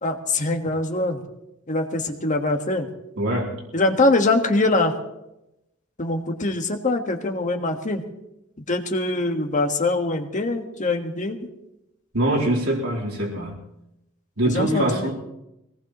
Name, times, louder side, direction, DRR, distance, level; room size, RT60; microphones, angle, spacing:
voice 1, 0.0-1.2 1.7-2.9 3.7-4.9 6.0-8.0 8.7-11.4 14.5-15.1, left 2 dB, 35° left, 4 dB, 1.5 m, -23 dB
voice 2, 3.2-3.5 12.1-13.6 14.4-15.1, right 1 dB, 80° right, -4 dB, 3.8 m, -23 dB
22.0 x 18.5 x 3.1 m, 0.89 s
head